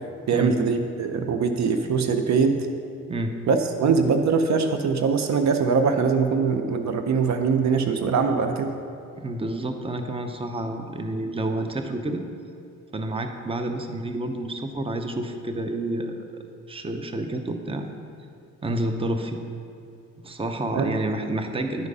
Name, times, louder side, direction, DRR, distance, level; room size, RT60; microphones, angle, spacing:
voice 1, 0.3-2.6 3.5-8.7 20.7-21.0, right 5 dB, 55° right, 7 dB, 0.7 m, -22 dB
voice 2, 9.2-12.2 12.9-16.4 16.7-17.9 18.6-19.4 20.2-21.9, right 1 dB, 15° right, 6 dB, 0.8 m, -29 dB
10.5 x 4.7 x 5.4 m, 2.7 s
supercardioid pair, 70°, 33 cm